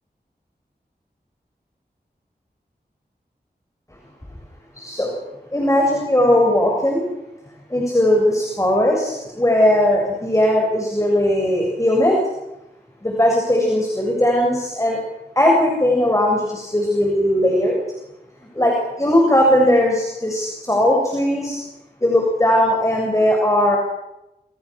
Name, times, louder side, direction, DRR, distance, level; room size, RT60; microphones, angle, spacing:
voice 1, 4.8-5.2 5.5-7.0 7.7-12.2 13.0-15.0 15.4-17.8 18.5-21.6 22.0-23.8, left 1 dB, 20° left, 0 dB, 7.3 m, -18 dB
28.5 x 28.0 x 6.4 m, 0.92 s
wide cardioid pair, 75°, 17 cm